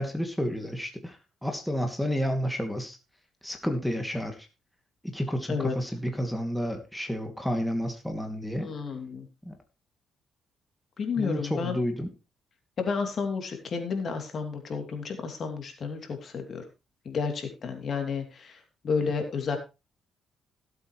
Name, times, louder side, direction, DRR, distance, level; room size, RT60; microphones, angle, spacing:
voice 1, 0.0-3.0 3.4-4.5 5.0-8.7 9.4-9.6 11.2-12.1, equal, 5° left, 4 dB, 2.4 m, -30 dB
voice 2, 8.6-9.3 11.0-11.8 12.8-16.6 17.0-19.6, left 5 dB, 50° left, 5 dB, 2.9 m, -31 dB
16.5 x 8.1 x 3.2 m, 0.28 s
cardioid pair, 90°, 0 cm